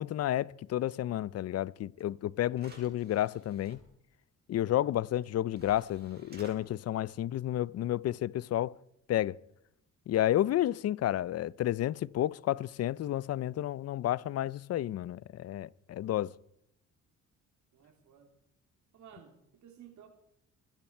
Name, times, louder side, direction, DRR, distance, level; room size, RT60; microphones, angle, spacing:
voice 1, 0.0-3.8 4.5-8.8 9.1-9.4 10.1-16.3, left 13 dB, 55° left, 0.5 m, -31 dB
sound 1, 2.0-2.1 2.5-3.8 5.1-5.2 5.5-6.6, right 2 dB, 35° right, 4.5 m, -54 dB
voice 2, 17.7-18.3 18.9-20.1, right 9 dB, 70° right, 3.1 m, -55 dB
24.5 x 12.0 x 4.5 m
cardioid pair, 90°, 30 cm